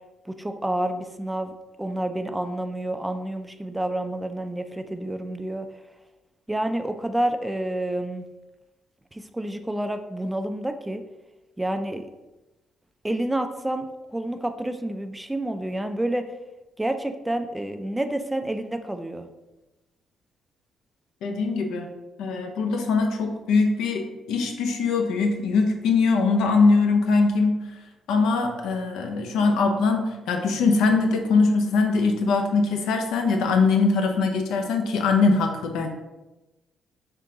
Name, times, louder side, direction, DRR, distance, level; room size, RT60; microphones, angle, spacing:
voice 1, 0.3-5.7 6.5-8.3 9.1-11.0 11.6-12.1 13.0-16.3 16.8-19.3, right 1 dB, 10° right, 7 dB, 0.3 m, -29 dB
voice 2, 21.2-21.9 22.2-27.6 28.1-35.9, left 4 dB, 85° left, 4 dB, 0.6 m, -22 dB
3.7 x 2.8 x 3.7 m, 1.0 s
cardioid pair, 90°, 0 cm